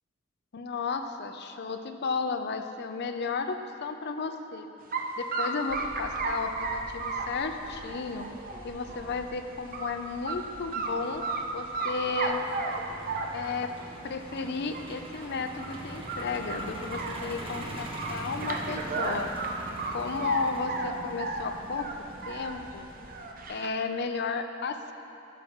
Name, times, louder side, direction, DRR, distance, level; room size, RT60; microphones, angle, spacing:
voice 1, 0.5-4.7 5.2-8.3 8.6-11.3 11.5-12.4 13.3-13.7 14.0-19.3 19.9-21.9 22.3-22.9 23.5-24.9, left 4 dB, 55° left, 7 dB, 0.5 m, -33 dB
sound 1, 4.9-5.0 5.3-9.1 9.5-9.9 10.3-10.4 10.7-11.4 11.7-13.7 14.3-14.4 14.7-14.8 15.1-15.2 15.6-15.8 16.1-17.6 18.0-20.4 20.7-22.6 22.9-23.7, right 4 dB, 45° right, 0.7 m, -33 dB
Truck, 5.7-23.5, right 1 dB, 25° right, 1.1 m, -43 dB
12.0 x 5.6 x 4.5 m, 3.0 s
head